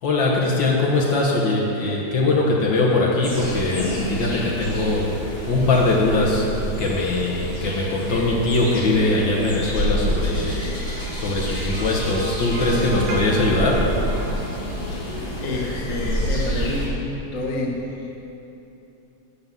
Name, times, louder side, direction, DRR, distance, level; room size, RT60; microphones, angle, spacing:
voice 1, 0.0-10.7 11.1-14.0, left 2 dB, 65° left, -3 dB, 1.2 m, -21 dB
sound 1, 3.2-16.9, equal, 25° left, 1.4 m, -28 dB
sound 2, 11.7-15.1, right 2 dB, 70° right, 2.5 m, -36 dB
voice 2, 15.4-16.9 17.3-18.2, left 2 dB, 85° left, -2 dB, 0.7 m, -28 dB
11.0 x 5.8 x 7.4 m, 2.9 s
omnidirectional pair, 3.5 m